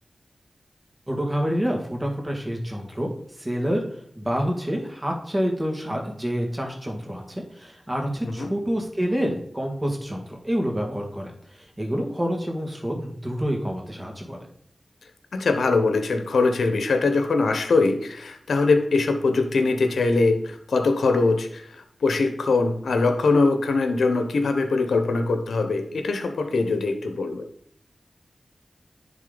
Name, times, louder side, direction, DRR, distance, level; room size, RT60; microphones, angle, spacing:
voice 1, 1.1-3.1 3.4-14.4, equal, 25° right, 1 dB, 1.9 m, -28 dB
voice 2, 15.3-21.7 22.0-27.5, left 3 dB, 85° left, 7 dB, 0.8 m, -22 dB
10.5 x 3.7 x 3.8 m, 0.66 s
cardioid pair, 40°, 0 cm